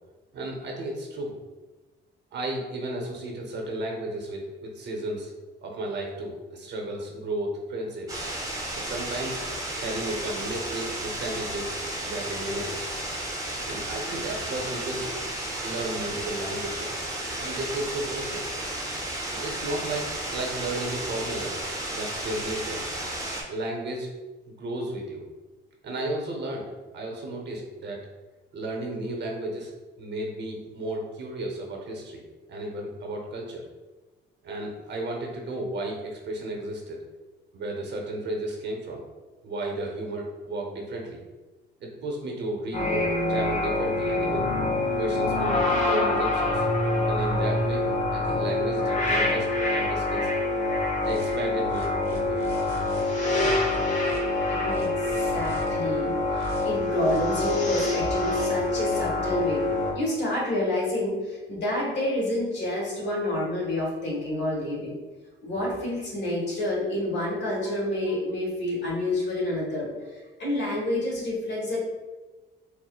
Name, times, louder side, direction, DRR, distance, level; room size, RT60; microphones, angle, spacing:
voice 1, 0.3-1.4 2.3-5.3 5.6-8.2 8.7-9.4 9.8-11.8 12.0-12.9 13.7-15.1 15.6-16.9 17.4-18.5 19.3-21.6 21.9-22.8 23.5-24.1 24.5-25.2 25.8-28.0 28.5-29.7 30.0-32.2 32.5-33.6 34.4-37.0 37.5-39.0 39.4-41.2 41.8-44.5 45.0-46.6 47.1-50.3 51.0-52.5, right 1 dB, 60° right, 1 dB, 0.8 m, -33 dB
sound 1, 8.1-23.4, right 1 dB, 15° right, 0.7 m, -33 dB
sound 2, 42.7-59.9, left 2 dB, 40° left, 0.7 m, -26 dB
sound 3, 51.0-51.4 51.7-53.0 53.3-54.2 54.7-55.7 56.3-56.7 57.0-57.5, left 1 dB, 15° left, 1.1 m, -42 dB
voice 2, 54.5-59.7 59.9-65.0 65.4-71.8, left 1 dB, 60° left, -4 dB, 1.4 m, -29 dB
4.4 x 2.0 x 2.3 m, 1.2 s
cardioid pair, 90°, 20 cm